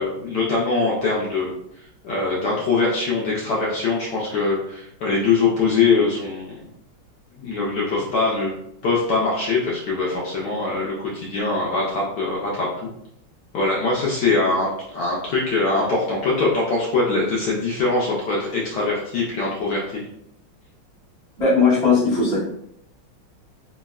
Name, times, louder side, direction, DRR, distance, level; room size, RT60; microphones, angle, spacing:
voice 1, 0.0-1.5 2.0-6.6 7.3-8.5 8.8-12.9 13.5-20.0, left 3 dB, 75° left, -5 dB, 1.0 m, -22 dB
voice 2, 21.4-22.4, left 4 dB, 5° left, -9 dB, 0.4 m, -18 dB
3.4 x 2.0 x 2.3 m, 0.76 s
omnidirectional pair, 2.3 m